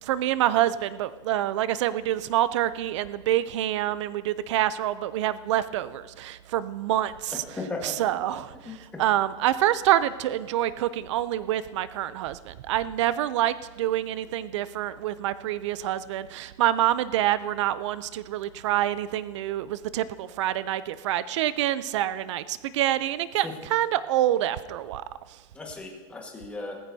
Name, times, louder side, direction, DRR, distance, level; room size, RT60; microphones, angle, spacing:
voice 1, 0.0-7.4 7.8-25.0, right 13 dB, 70° right, 15 dB, 0.5 m, -26 dB
voice 2, 7.6-8.0 8.6-9.0 23.4-23.5 25.5-26.8, left 3 dB, 10° left, 0 dB, 1.5 m, -36 dB
19.0 x 15.0 x 2.7 m, 1.4 s
supercardioid pair, 175°, 16 cm